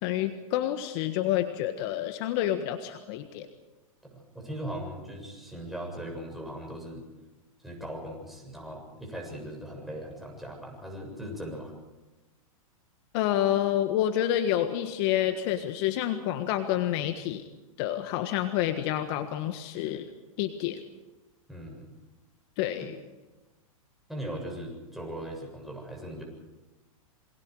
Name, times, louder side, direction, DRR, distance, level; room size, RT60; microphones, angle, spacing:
voice 1, 0.0-3.5 13.1-17.4 17.8-20.1 20.4-20.8 22.6-22.9, left 12 dB, 45° left, 8 dB, 1.5 m, -28 dB
voice 2, 4.0-7.0 7.6-11.7 21.5-21.9 22.8-22.9 24.1-26.2, right 1 dB, ahead, -1 dB, 7.5 m, -39 dB
28.0 x 23.5 x 4.8 m, 1.1 s
hypercardioid pair, 115°, 18 cm